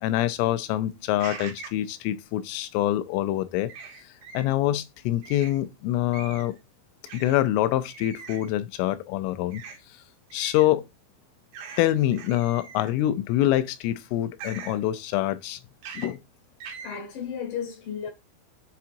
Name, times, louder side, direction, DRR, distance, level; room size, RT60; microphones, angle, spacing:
voice 1, 0.0-3.7 4.0-6.6 7.1-9.6 10.3-10.8 11.8-15.6 16.0-16.2, left 14 dB, 85° left, 3.1 m, -25 dB
sound 1, 1.2-1.8 3.7-4.4 5.2-5.6 6.1-6.6 7.1-7.4 7.9-8.5 9.5-9.8 10.3-10.7 11.5-11.8 12.1-13.0 14.4-14.8 15.8-16.1 16.6-17.0, right 5 dB, 65° right, 2.1 m, -41 dB
voice 2, 16.8-18.1, left 7 dB, 65° left, 3.9 m, -33 dB
8.5 x 5.5 x 2.5 m
omnidirectional pair, 5.7 m